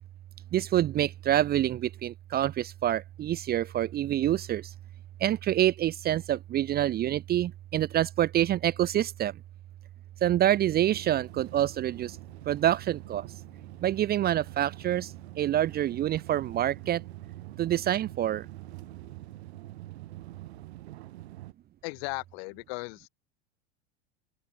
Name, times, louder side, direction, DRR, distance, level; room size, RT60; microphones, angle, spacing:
voice 1, 0.5-4.7 5.2-9.3 10.2-12.2 12.5-13.3 13.8-17.0 17.6-18.5, right 12 dB, 30° right, 0.6 m, -27 dB
sound 1, 10.9-21.5, right 16 dB, 80° right, 1.8 m, -46 dB
voice 2, 21.8-23.1, left 30 dB, 65° left, 6.6 m, -36 dB
open air
hypercardioid pair, 105°, 32 cm